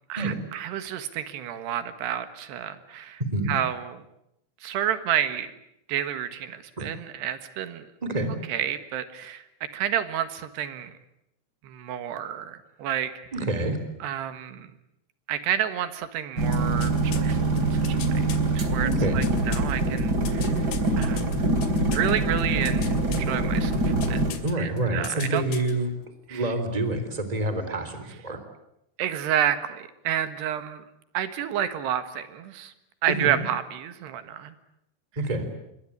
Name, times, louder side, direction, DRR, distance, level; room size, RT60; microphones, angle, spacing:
voice 1, 0.1-3.2 3.5-3.9 4.6-5.5 5.9-7.9 8.5-9.4 9.7-10.9 11.6-13.1 14.0-14.7 15.3-18.2 18.6-20.6 21.0-21.4 21.9-22.9 23.2-24.2 24.6-25.4 26.3-26.4 29.0-30.8 31.2-32.7 33.0-34.5, right 10 dB, 85° right, 11 dB, 3.7 m, -30 dB
voice 2, 8.0-8.3 13.3-13.8 18.8-19.3 20.3-20.4 24.4-25.9 26.3-28.4 33.1-33.4 35.2-35.4, right 2 dB, 10° right, 9 dB, 3.2 m, -27 dB
sound 1, 16.4-24.3, right 2 dB, 25° right, 3.3 m, -24 dB
sound 2, 16.5-18.4 18.9-22.1 22.4-23.3 23.7-24.5 24.8-25.7 26.0-26.1, left 6 dB, 75° left, 4.5 m, -37 dB
28.0 x 23.0 x 8.6 m, 0.80 s
omnidirectional pair, 4.7 m